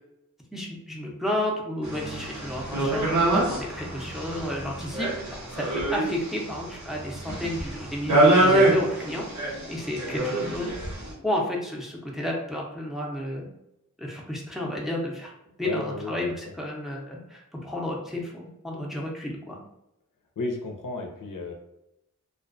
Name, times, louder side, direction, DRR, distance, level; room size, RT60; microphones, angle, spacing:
voice 1, 0.5-9.4 9.7-10.8 11.2-13.5 14.0-15.3 15.6-19.6, left 1 dB, ahead, -2 dB, 0.6 m, -32 dB
sound 1, 1.8-11.1, right 1 dB, 65° right, 0.8 m, -25 dB
voice 2, 15.6-16.3 20.4-21.5, left 2 dB, 90° left, 1 dB, 0.5 m, -33 dB
2.3 x 2.2 x 2.5 m, 0.83 s
wide cardioid pair, 45°, 31 cm